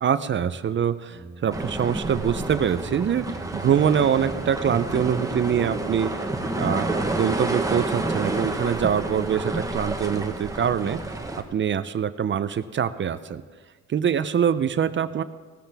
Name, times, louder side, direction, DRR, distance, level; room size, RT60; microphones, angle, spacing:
voice 1, 0.0-6.1 6.6-11.0 11.5-13.4 13.9-15.2, right 8 dB, 40° right, 13 dB, 0.5 m, -24 dB
sound 1, 1.1-7.7, right 3 dB, 25° left, 3.2 m, -43 dB
sound 2, 1.5-11.4, right 2 dB, 10° right, 1.1 m, -29 dB
16.0 x 13.5 x 3.4 m, 1.4 s
cardioid pair, 90°, 30 cm